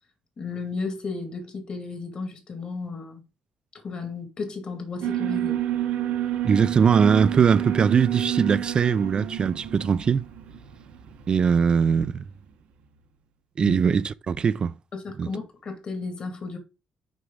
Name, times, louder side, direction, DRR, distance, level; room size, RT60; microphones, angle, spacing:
voice 1, 0.4-3.2 3.7-5.6 13.6-13.8 14.9-16.6, left 4 dB, 45° left, 2.2 m, -33 dB
Alarm, 5.0-12.1, right 12 dB, 85° right, 1.0 m, -29 dB
voice 2, 6.4-10.2 11.3-12.2 13.6-14.7 15.2-15.3, right 6 dB, 40° right, 0.4 m, -21 dB
6.1 x 4.8 x 3.8 m
cardioid pair, 105°, 2 cm